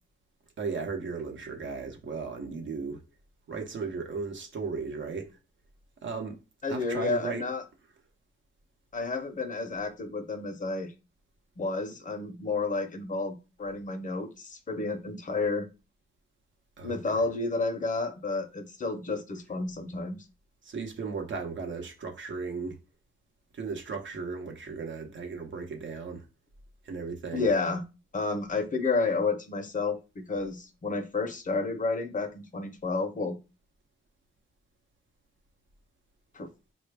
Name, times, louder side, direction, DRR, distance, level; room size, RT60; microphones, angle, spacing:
voice 1, 0.6-3.0 3.5-5.4 6.0-6.4 6.7-7.4 16.8-17.0 20.6-22.8 23.5-26.3 26.8-27.5, right 4 dB, 65° right, 0.8 m, -36 dB
voice 2, 6.6-7.6 8.9-10.9 11.6-15.7 16.8-20.2 27.3-27.8 28.1-33.4 36.3-36.5, left 3 dB, 40° left, 0.6 m, -31 dB
4.1 x 2.2 x 3.2 m
wide cardioid pair, 110°, 21 cm